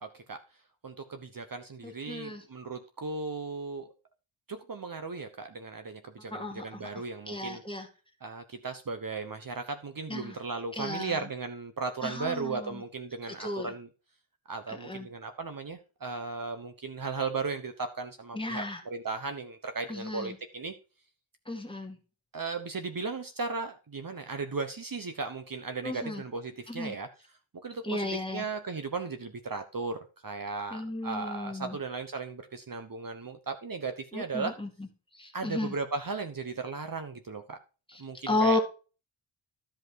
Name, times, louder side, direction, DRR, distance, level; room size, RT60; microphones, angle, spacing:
voice 1, 0.0-0.4 0.8-3.9 4.5-7.6 8.2-13.9 14.5-20.7 22.3-27.1 27.6-34.6 35.3-37.6 38.0-38.6, right 4 dB, 40° right, 7 dB, 1.1 m, -36 dB
voice 2, 1.8-2.4 6.3-7.9 10.1-10.3 10.8-11.1 12.0-12.8 13.4-13.7 14.7-15.1 18.3-18.8 19.9-20.3 21.5-22.0 25.8-26.2 26.7-27.0 27.8-28.4 30.7-31.8 34.1-34.7 35.2-35.7 38.3-38.6, left 2 dB, 10° left, 2 dB, 2.1 m, -33 dB
13.0 x 5.3 x 4.7 m, 0.34 s
wide cardioid pair, 150°, 49 cm